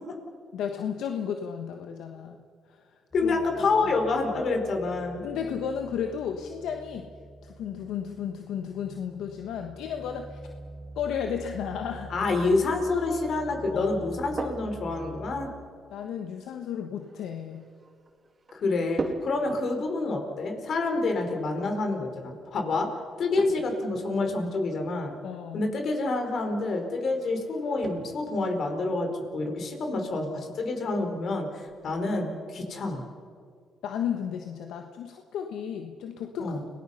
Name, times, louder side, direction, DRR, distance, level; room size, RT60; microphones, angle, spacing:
voice 1, 0.5-2.4 2.7-2.8 3.2-3.4 5.2-7.1 7.4-10.4 11.0-12.1 13.7-14.4 15.9-17.7 25.2-25.6 33.8-36.6, left 8 dB, 85° left, 4 dB, 1.3 m, -33 dB
voice 2, 3.1-5.2 12.1-15.5 18.5-22.9 23.2-25.1 25.5-33.0 36.4-36.6, left 3 dB, 60° left, 4 dB, 4.6 m, -28 dB
sound 1, 3.1-15.5, right 2 dB, 20° left, 5.9 m, -46 dB
sound 2, 13.9-32.0, right 3 dB, 40° right, 2.6 m, -44 dB
30.0 x 19.5 x 5.7 m, 2.2 s
cardioid pair, 90°, 0 cm